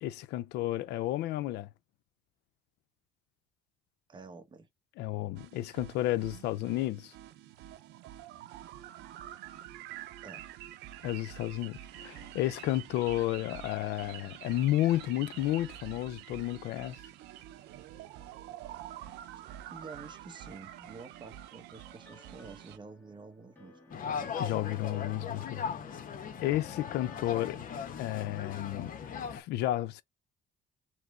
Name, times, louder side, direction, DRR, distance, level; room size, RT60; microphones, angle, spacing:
voice 1, 0.0-1.7 5.0-7.1 11.0-17.0 24.4-25.7 26.4-27.6 28.0-28.9 29.3-30.0, left 14 dB, 80° left, 0.4 m, -32 dB
voice 2, 4.1-4.7 10.2-10.5 19.7-23.8 27.1-27.3, right 4 dB, 25° right, 1.1 m, -49 dB
sound 1, 5.4-22.8, right 12 dB, 85° right, 0.6 m, -47 dB
sound 2, 21.9-27.1, left 2 dB, 10° left, 2.0 m, -59 dB
sound 3, 23.9-29.4, left 6 dB, 55° left, 1.0 m, -38 dB
3.2 x 3.0 x 3.6 m
cardioid pair, 110°, 17 cm